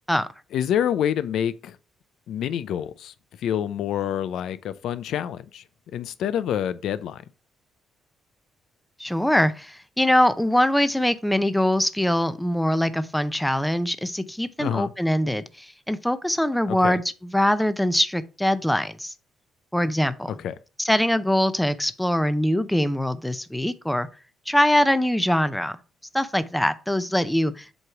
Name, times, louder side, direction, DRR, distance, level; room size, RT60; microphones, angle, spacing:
voice 1, 0.5-1.8 2.3-5.6 5.9-7.2 14.6-14.9 16.7-17.0 20.3-20.5, left 9 dB, 75° left, 0.4 m, -27 dB
voice 2, 9.0-19.1 19.7-20.3 20.8-24.1 24.5-25.8 26.1-27.7, left 1 dB, 5° left, 0.6 m, -23 dB
7.9 x 3.1 x 4.8 m
cardioid pair, 90°, 0 cm